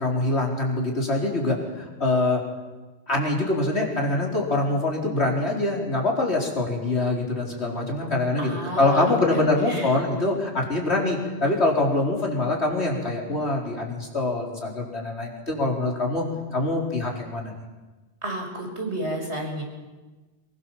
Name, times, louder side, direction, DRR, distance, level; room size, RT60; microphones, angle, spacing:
voice 1, 0.0-2.4 3.1-16.2 16.5-17.6, left 2 dB, 80° left, -1 dB, 4.8 m, -24 dB
voice 2, 8.4-9.9 18.2-19.6, right 1 dB, 90° right, 1 dB, 6.5 m, -31 dB
25.0 x 22.5 x 7.5 m, 1.2 s
omnidirectional pair, 1.1 m